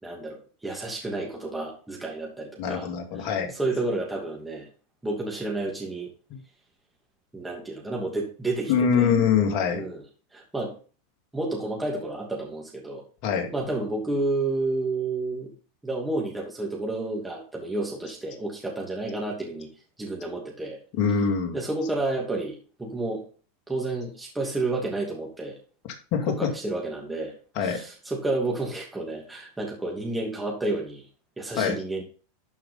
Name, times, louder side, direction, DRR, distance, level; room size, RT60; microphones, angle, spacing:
voice 1, 0.0-2.9 3.2-4.7 5.0-6.1 7.3-9.1 9.7-10.0 10.3-10.7 11.3-13.0 13.5-15.5 15.8-19.7 20.0-20.8 21.5-23.2 23.7-25.6 26.4-27.3 27.6-31.1 31.4-32.0, right 2 dB, 10° right, -2 dB, 2.7 m, -30 dB
voice 2, 2.6-3.5 6.3-6.4 8.7-9.9 13.2-13.5 20.9-21.6 26.1-26.5 27.5-27.8 31.6-31.8, left 6 dB, 55° left, 2 dB, 2.5 m, -24 dB
12.0 x 5.6 x 3.9 m, 0.38 s
hypercardioid pair, 115°, 0 cm